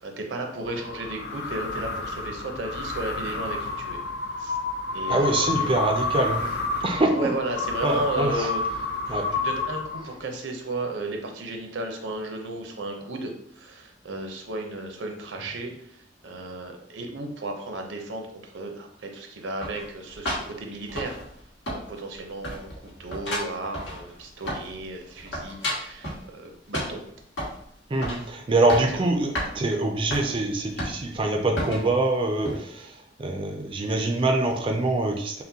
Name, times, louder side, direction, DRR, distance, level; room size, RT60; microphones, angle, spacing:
voice 1, 0.0-4.0 4.4-4.6 4.9-5.7 7.1-8.6 9.1-21.2 21.7-22.7 23.0-27.0 28.1-28.3 28.6-29.1, right 2 dB, 80° right, 3 dB, 0.7 m, -34 dB
sound 1, 0.6-10.4, left 3 dB, 60° left, 0.5 m, -30 dB
voice 2, 5.1-6.5 6.8-7.4 7.8-8.5 9.1-9.3 27.9-35.4, right 2 dB, 30° right, 2 dB, 0.4 m, -25 dB
sound 2, 19.6-21.4 21.7-22.2 22.4-24.8 25.1-26.2 26.7-27.6 28.0-28.3 28.5-29.0 29.4-29.5 30.1-30.3 30.8-31.2 31.6-31.9 32.4-32.6, equal, 90° left, 1.4 m, -32 dB
5.8 x 2.1 x 2.7 m, 0.67 s
head